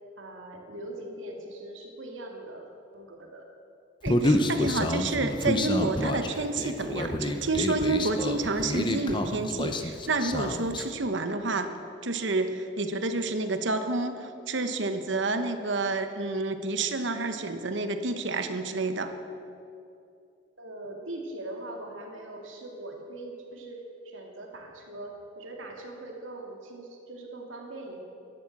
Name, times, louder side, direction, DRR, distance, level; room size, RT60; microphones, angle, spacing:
voice 1, 0.2-3.5 20.6-28.0, right 1 dB, 85° right, 1 dB, 2.4 m, -41 dB
voice 2, 4.0-11.7 12.0-19.1, right 3 dB, 65° right, 8 dB, 1.0 m, -29 dB
Human voice, 4.1-10.9, left 1 dB, 25° left, 0.7 m, -28 dB
13.0 x 11.0 x 7.4 m, 2.6 s
head